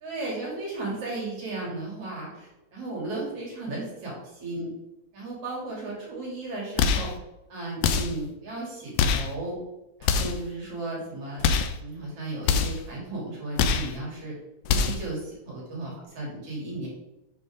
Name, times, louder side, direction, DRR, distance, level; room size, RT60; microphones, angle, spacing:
voice 1, 0.0-4.1 4.4-4.7 5.1-7.1 7.5-9.6 10.0-11.4 11.8-14.3 14.7-16.9, right 2 dB, 50° right, -4 dB, 3.8 m, -35 dB
sound 1, 6.8-7.2 7.8-8.2 9.0-9.3 10.0-10.5 11.4-11.8 12.4-12.9 13.6-13.9 14.6-15.1, left 6 dB, 80° left, 1.4 m, -24 dB
7.9 x 6.6 x 3.7 m, 0.93 s
omnidirectional pair, 3.5 m